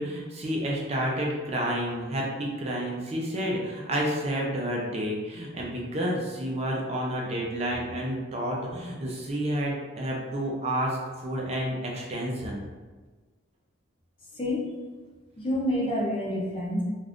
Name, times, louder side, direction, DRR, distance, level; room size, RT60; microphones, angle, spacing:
voice 1, 0.0-12.6, equal, 30° right, -2 dB, 0.5 m, -30 dB
voice 2, 14.4-14.8 15.4-16.8, left 1 dB, 25° left, -4 dB, 0.6 m, -28 dB
2.5 x 2.4 x 3.4 m, 1.3 s
head